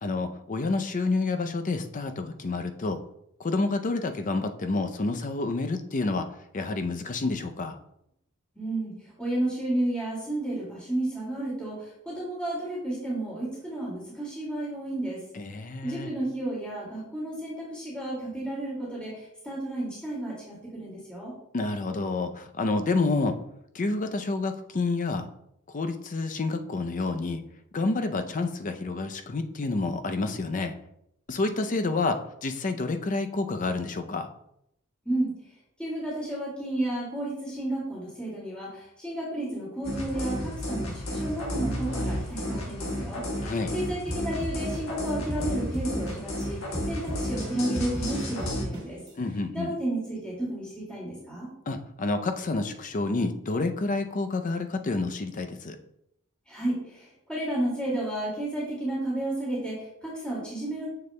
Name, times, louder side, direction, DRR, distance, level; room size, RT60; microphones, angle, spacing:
voice 1, 0.0-3.0 3.4-6.3 6.5-7.8 15.3-16.1 21.5-23.4 23.7-25.3 25.7-27.4 27.7-30.7 31.3-34.3 43.4-43.7 49.2-49.7 51.7-55.8, left 3 dB, 40° left, 7 dB, 0.5 m, -29 dB
voice 2, 8.5-8.9 9.2-15.2 15.8-21.3 35.0-35.4 35.8-49.0 49.5-51.5 56.5-60.9, right 1 dB, 5° left, -7 dB, 2.2 m, -32 dB
sound 1, 39.8-48.7, left 1 dB, 70° left, 1.4 m, -32 dB
sound 2, 44.1-46.4 46.7-49.1, equal, 20° right, 1.5 m, -34 dB
6.9 x 6.6 x 2.2 m, 0.78 s
head